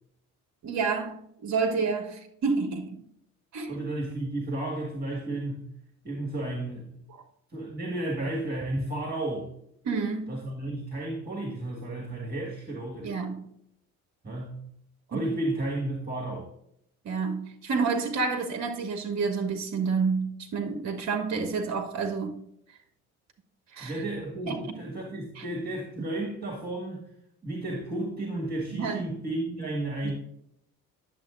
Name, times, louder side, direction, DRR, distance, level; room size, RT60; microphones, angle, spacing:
voice 1, 0.6-3.0 3.5-3.8 9.8-10.3 13.0-13.4 15.1-15.3 17.0-22.4 23.8-23.9 24.5-24.8 25.4-25.5 26.0-26.1 28.8-29.0 30.0-30.1, right 4 dB, 40° right, 1.0 m, -29 dB
voice 2, 3.7-5.7 6.0-7.0 7.5-9.5 10.3-13.1 14.2-14.6 15.1-16.5 23.8-27.1 27.4-30.1, right 1 dB, 20° right, 1.8 m, -33 dB
10.0 x 6.9 x 2.6 m
hypercardioid pair, 55°, 42 cm